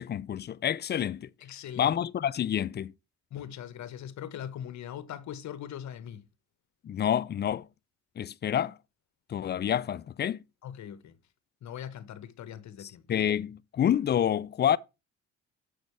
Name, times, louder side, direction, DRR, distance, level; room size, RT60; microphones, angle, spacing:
voice 1, 0.0-1.3 1.8-2.9 6.8-7.6 8.2-8.8 9.3-10.4 12.8-14.8, left 9 dB, 35° left, 0.4 m, -28 dB
voice 2, 1.4-1.9 3.3-6.3 10.6-11.2 11.6-13.0, left 10 dB, 70° left, 1.1 m, -41 dB
7.1 x 6.5 x 3.1 m
cardioid pair, 90°, 30 cm